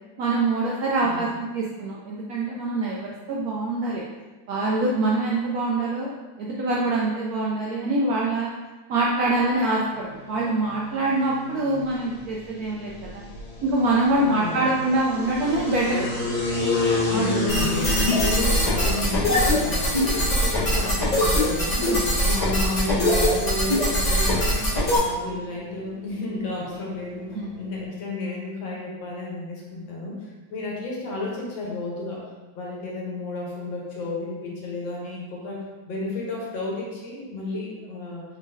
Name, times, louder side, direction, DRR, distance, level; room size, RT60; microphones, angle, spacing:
voice 1, 0.2-1.3 1.5-4.0 4.5-6.1 6.4-8.5 8.9-13.2 13.6-16.1 17.1-17.3 21.8-22.2 27.3-27.5, right 2 dB, 75° right, -4 dB, 0.8 m, -24 dB
sound 1, 9.8-27.8, left 2 dB, 55° left, 1.2 m, -32 dB
voice 2, 14.2-14.8 17.1-32.2 32.5-38.2, left 2 dB, 80° left, -3 dB, 1.7 m, -32 dB
sound 2, 17.5-25.0, equal, 30° left, 1.0 m, -22 dB
4.0 x 3.8 x 2.6 m, 1.2 s
omnidirectional pair, 2.1 m